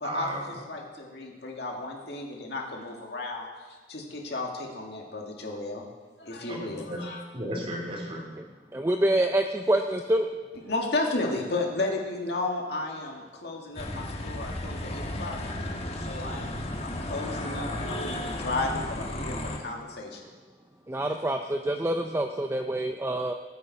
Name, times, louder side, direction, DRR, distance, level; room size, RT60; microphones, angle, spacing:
voice 1, 0.0-0.6 6.5-8.6, right 1 dB, 30° right, -1 dB, 2.8 m, -35 dB
voice 2, 0.7-3.5 3.9-5.8 6.2-7.2 10.7-15.4 16.1-20.2, left 2 dB, 65° left, 0 dB, 2.1 m, -33 dB
voice 3, 8.7-10.3 20.9-23.3, right 1 dB, 15° right, 5 dB, 0.5 m, -26 dB
sound 1, 13.7-19.6, left 1 dB, 35° left, 1.3 m, -34 dB
19.0 x 9.4 x 4.2 m, 1.4 s
head